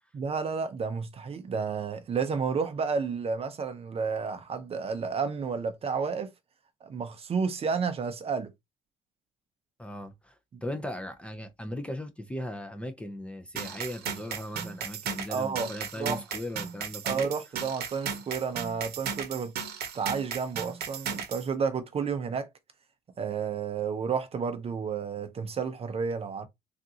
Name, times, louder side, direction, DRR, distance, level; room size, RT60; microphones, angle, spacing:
voice 1, 0.1-6.3 6.8-8.5 15.3-15.7 16.0-16.2 17.0-19.5 19.9-22.5 23.2-26.5, right 5 dB, 35° right, 0.6 m, -31 dB
voice 2, 9.8-17.3, left 1 dB, 5° left, 0.6 m, -38 dB
sound 1, 13.6-21.5, right 7 dB, 70° right, 0.9 m, -35 dB
3.6 x 2.5 x 2.7 m
cardioid pair, 110°, 17 cm